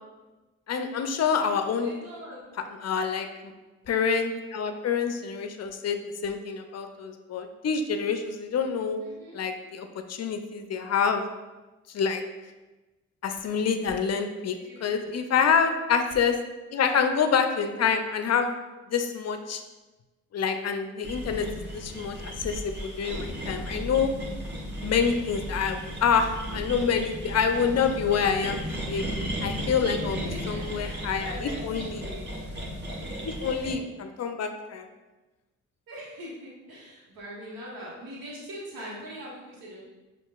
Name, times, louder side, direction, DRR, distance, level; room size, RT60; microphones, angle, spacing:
voice 1, 0.7-1.9 2.8-3.3 3.9-9.0 9.3-11.2 11.9-12.2 13.2-16.4 16.7-18.5 18.9-19.6 20.3-24.1 24.8-28.6 28.9-29.1 29.4-30.2 30.5-32.0 33.2-34.9, left 6 dB, 50° left, 7 dB, 0.5 m, -27 dB
voice 2, 1.8-2.4 9.0-9.4 14.4-15.1 29.1-32.3 35.9-39.8, equal, 85° right, -6 dB, 1.1 m, -42 dB
sound 1, 21.0-33.7, equal, 30° right, 1.1 m, -35 dB
5.4 x 2.4 x 2.4 m, 1.2 s
supercardioid pair, 45°, 34 cm